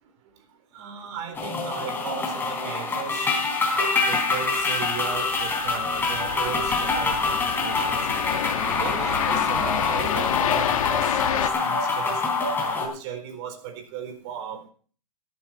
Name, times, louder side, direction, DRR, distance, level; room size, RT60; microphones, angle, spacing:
voice 1, 0.7-3.3 3.7-8.1 8.4-12.3 12.6-14.7, right 7 dB, 45° right, 5 dB, 4.1 m, -36 dB
sound 1, 1.3-12.9, left 4 dB, 10° left, 3.5 m, -25 dB
sound 2, 4.8-11.5, left 11 dB, 65° left, 1.5 m, -29 dB
13.5 x 11.5 x 4.5 m, 0.42 s
hypercardioid pair, 140°, 19 cm